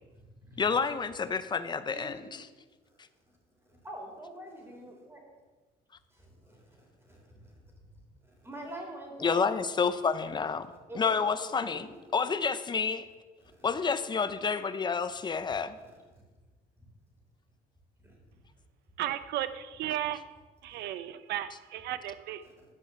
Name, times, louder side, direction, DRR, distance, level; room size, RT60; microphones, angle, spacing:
voice 1, 0.6-2.2 9.2-10.7 11.0-11.9 12.1-13.1 13.6-15.8, left 5 dB, 25° left, 0.6 m, -29 dB
voice 2, 1.8-2.3 3.3-5.2 6.1-7.6 8.2-9.5 10.9-11.9 13.4-13.7 15.8-16.0 16.8-16.9 18.0-18.2 20.7-20.9 22.4-22.7, right 1 dB, 15° right, 3.2 m, -46 dB
voice 3, 19.0-20.2 20.6-22.4, right 12 dB, 80° right, 0.6 m, -34 dB
11.0 x 4.8 x 7.2 m
cardioid pair, 110°, 17 cm